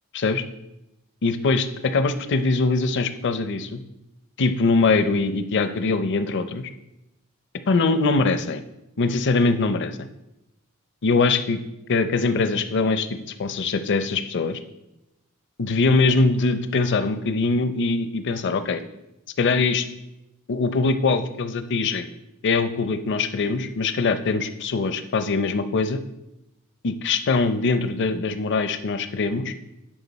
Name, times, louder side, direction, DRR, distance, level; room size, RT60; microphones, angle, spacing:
voice 1, 1.2-3.8 4.4-6.7 7.7-8.6 9.0-10.0 11.0-11.6 11.9-13.1 13.4-14.6 15.6-18.8 19.4-19.9 20.5-22.1 22.4-26.0 26.8-29.5, left 3 dB, 55° left, 10 dB, 0.5 m, -22 dB
11.0 x 5.0 x 4.1 m, 0.91 s
head